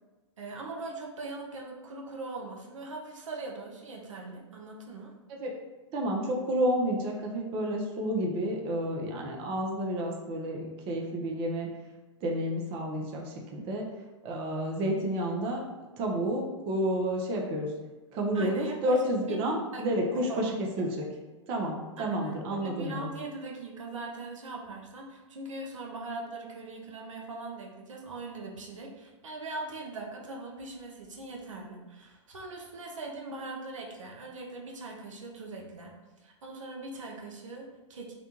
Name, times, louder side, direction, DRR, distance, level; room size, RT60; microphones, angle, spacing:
voice 1, 0.4-5.1 18.3-19.1 19.7-19.8 20.1-20.5 22.0-35.9 36.2-38.1, right 2 dB, 85° right, 0 dB, 0.5 m, -41 dB
voice 2, 5.9-11.7 12.2-13.8 14.2-15.6 16.0-17.7 18.1-21.1 21.5-23.1, equal, 35° right, 1 dB, 0.5 m, -30 dB
2.5 x 2.2 x 2.8 m, 1.2 s
hypercardioid pair, 115°, 16 cm